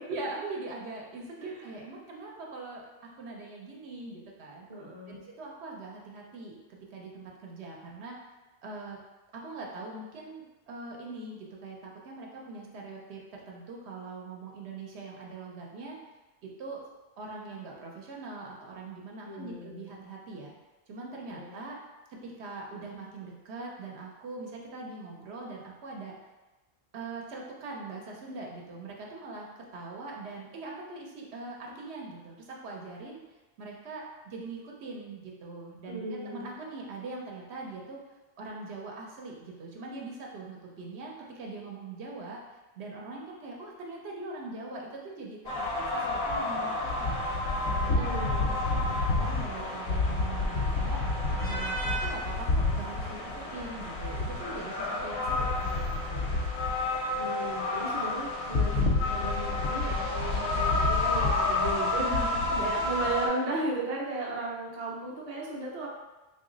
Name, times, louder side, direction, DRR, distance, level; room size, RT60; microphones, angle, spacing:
voice 1, 0.1-2.8 3.2-4.7 5.1-8.2 8.6-9.0 9.3-16.0 16.4-16.8 17.2-20.5 20.9-21.8 22.1-26.2 26.9-33.2 33.6-38.0 38.4-42.4 42.8-47.3 47.7-48.1 48.5-51.0 51.4-56.3 61.9-62.7, right 3 dB, 80° right, -1 dB, 0.9 m, -42 dB
voice 2, 1.4-1.8 4.7-5.2 19.2-20.0 21.3-21.6 35.9-36.5 47.9-48.5 57.2-62.0 62.6-65.9, right 2 dB, 45° right, -3 dB, 0.6 m, -36 dB
sound 1, 45.5-63.3, left 2 dB, 75° left, 0.9 m, -29 dB
3.0 x 2.4 x 3.7 m, 1.1 s
omnidirectional pair, 1.1 m